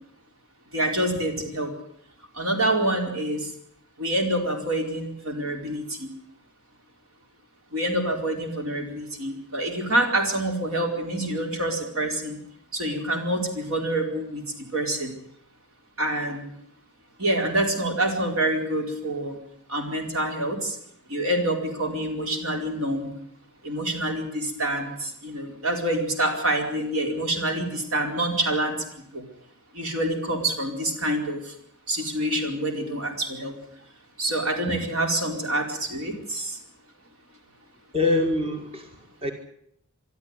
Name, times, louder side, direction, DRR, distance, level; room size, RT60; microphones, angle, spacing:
voice 1, 0.7-1.7 2.4-3.4 4.0-6.1 7.7-12.4 12.7-14.4 14.7-15.1 16.0-16.5 17.2-19.4 19.7-20.8 21.1-23.1 23.6-28.8 29.1-29.3 29.7-31.4 31.9-33.5 34.2-36.6, right 1 dB, 65° right, 3 dB, 4.6 m, -26 dB
voice 2, 37.9-39.3, left 2 dB, 25° right, 4 dB, 1.9 m, -25 dB
23.0 x 13.0 x 9.7 m, 0.71 s
head